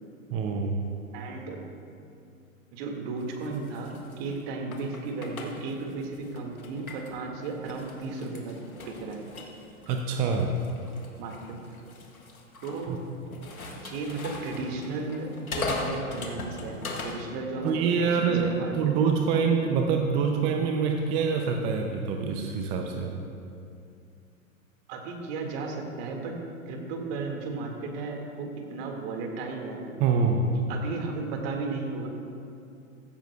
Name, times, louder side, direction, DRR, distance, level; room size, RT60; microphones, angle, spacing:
voice 1, 0.3-0.9 9.9-10.5 12.9-13.0 17.6-23.2 30.0-30.5, right 5 dB, 15° right, 3 dB, 0.3 m, -25 dB
voice 2, 1.1-1.6 2.7-9.2 11.2-11.3 11.7-11.8 12.6-13.0 13.8-18.7 24.9-26.4 26.7-29.9 30.7-32.1, right 3 dB, 45° right, 2 dB, 2.0 m, -34 dB
sound 1, 3.2-7.2 7.6-17.2, left 3 dB, 90° left, 1.5 m, -39 dB
16.0 x 13.5 x 2.3 m, 2.5 s
hypercardioid pair, 105°, 41 cm